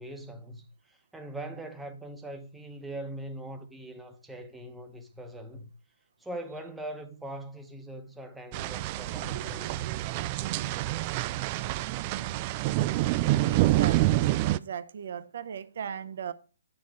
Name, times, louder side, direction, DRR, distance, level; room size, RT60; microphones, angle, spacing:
voice 1, 0.0-5.7 6.2-9.9, right 1 dB, 5° right, 0.9 m, -41 dB
sound 1, 8.5-14.6, right 16 dB, 30° right, 0.3 m, -27 dB
voice 2, 13.5-16.3, right 8 dB, 50° right, 0.7 m, -38 dB
9.6 x 4.2 x 6.1 m
figure-of-eight pair, 130°, 0 cm